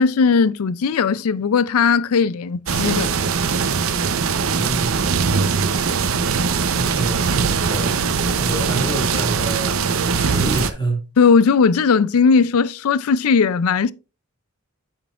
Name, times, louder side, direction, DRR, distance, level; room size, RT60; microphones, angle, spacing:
voice 1, 0.0-3.1 11.2-13.9, left 5 dB, 80° left, 0.4 m, -17 dB
sound 1, 2.7-10.7, right 5 dB, 70° right, 0.7 m, -21 dB
voice 2, 4.5-5.0 6.7-11.0, right 2 dB, 20° left, 2.1 m, -28 dB
8.4 x 7.1 x 2.4 m
head